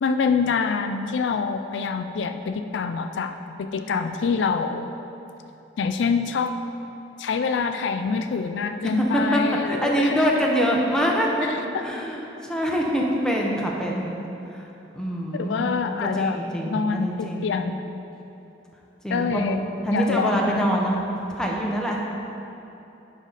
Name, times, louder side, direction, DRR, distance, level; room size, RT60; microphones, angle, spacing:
voice 1, 0.0-4.9 5.8-6.6 7.2-10.1 15.3-16.4 16.7-17.7 19.1-19.6 19.9-20.7, left 5 dB, 70° left, 7 dB, 0.4 m, -25 dB
voice 2, 8.8-14.1 14.5-14.7 14.9-17.6 19.0-19.6 19.8-21.0 21.3-22.0, equal, 5° left, -2 dB, 0.9 m, -25 dB
11.0 x 5.5 x 4.1 m, 3.0 s
head